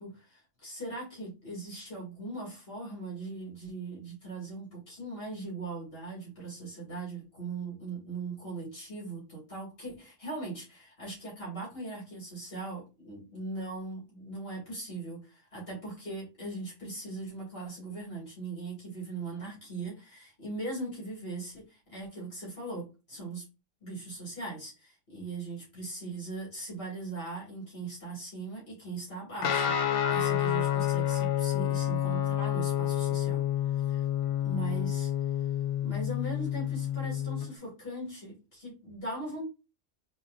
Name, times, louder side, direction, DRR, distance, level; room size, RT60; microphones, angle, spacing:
voice 1, 0.0-23.4 23.8-34.0 34.4-35.1 35.8-39.4, right 2 dB, 55° left, -5 dB, 2.7 m, -40 dB
Guitar, 29.4-37.5, left 11 dB, 90° left, 1.0 m, -29 dB
4.1 x 3.1 x 3.9 m, 0.29 s
omnidirectional pair, 1.2 m